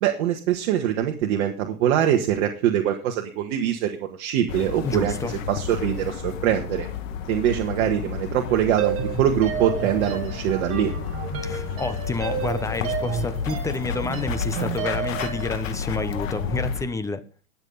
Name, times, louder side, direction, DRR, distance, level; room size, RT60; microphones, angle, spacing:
voice 1, 0.0-6.9 7.3-10.9, right 10 dB, 55° right, 1.7 m, -23 dB
sound 1, 4.5-16.8, left 7 dB, 65° left, 2.2 m, -31 dB
voice 2, 4.8-5.4 11.4-17.2, left 3 dB, 5° left, 0.8 m, -29 dB
sound 2, 8.8-15.6, right 8 dB, 30° right, 2.7 m, -31 dB
20.5 x 7.5 x 4.0 m
hypercardioid pair, 130°, 42 cm